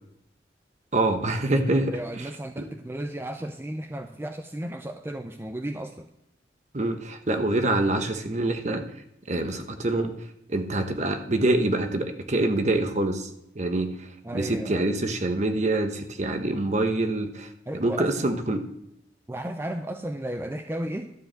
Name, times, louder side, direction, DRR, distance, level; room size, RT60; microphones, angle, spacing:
voice 1, 0.9-2.3 6.7-8.8 9.3-10.1 10.5-13.3 13.5-14.1 14.3-17.5 17.8-18.6, right 2 dB, 40° right, 7 dB, 1.0 m, -25 dB
voice 2, 1.9-6.1 14.2-15.0 17.7-18.1 19.3-21.1, right 1 dB, 15° right, 6 dB, 0.4 m, -34 dB
12.5 x 4.7 x 7.6 m, 0.83 s
head